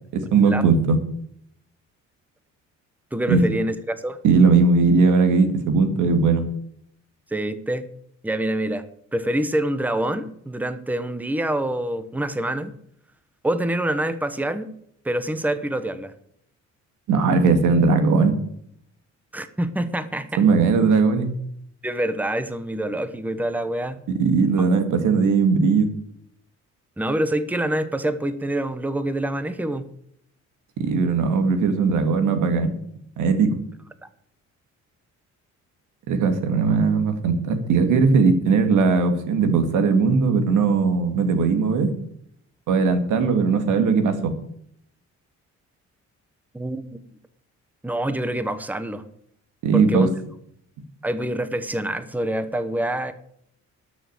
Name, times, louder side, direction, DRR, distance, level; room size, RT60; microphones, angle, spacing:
voice 1, 0.1-1.0 3.3-3.4 4.2-6.5 17.1-18.4 20.4-21.3 24.1-25.9 30.8-32.7 33.2-33.6 36.1-41.9 42.7-44.3 49.6-50.1, right 4 dB, 85° right, 8 dB, 2.0 m, -19 dB
voice 2, 3.1-4.2 7.3-7.9 8.2-8.8 9.1-12.7 13.4-14.7 15.0-16.1 19.3-20.4 21.8-24.0 27.0-29.9 46.5-47.0 47.8-49.0 49.7-50.1 51.0-53.1, right 1 dB, 5° right, 11 dB, 1.1 m, -26 dB
12.5 x 6.4 x 7.9 m, 0.70 s
cardioid pair, 90°, 30 cm